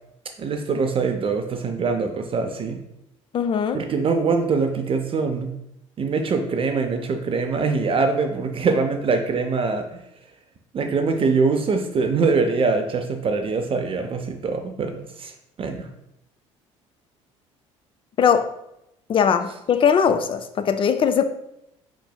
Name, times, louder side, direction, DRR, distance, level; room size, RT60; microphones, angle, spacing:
voice 1, 0.4-2.8 3.7-5.5 6.0-10.0 10.7-15.3 15.6-15.9, right 4 dB, 35° right, 5 dB, 0.5 m, -23 dB
voice 2, 3.3-3.8 18.2-18.5 19.1-21.2, left 7 dB, 35° left, 10 dB, 0.4 m, -20 dB
4.5 x 4.0 x 2.2 m, 0.82 s
hypercardioid pair, 55°, 16 cm